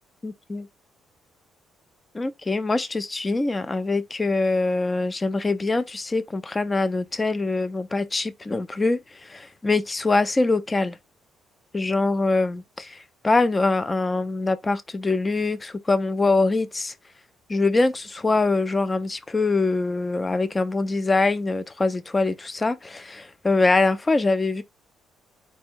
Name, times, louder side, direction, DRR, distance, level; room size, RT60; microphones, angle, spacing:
voice 1, 0.2-0.7 2.1-11.0 11.7-16.9 17.5-24.6, left 3 dB, 20° left, 0.4 m, -23 dB
4.3 x 2.1 x 4.4 m
cardioid pair, 110°, 0 cm